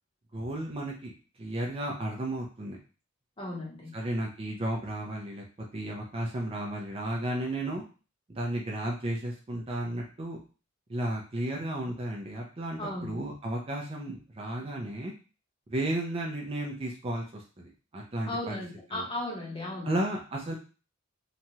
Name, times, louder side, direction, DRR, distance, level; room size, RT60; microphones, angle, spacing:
voice 1, 0.3-1.1 1.4-2.8 3.9-5.4 5.7-7.8 8.3-10.4 10.9-15.1 15.7-18.6 18.9-19.1 19.8-20.5, right 1 dB, 30° right, -1 dB, 0.5 m, -33 dB
voice 2, 3.4-3.9 12.8-13.2 18.3-19.9, left 1 dB, 25° left, -2 dB, 0.9 m, -36 dB
3.0 x 2.3 x 2.7 m, 0.35 s
head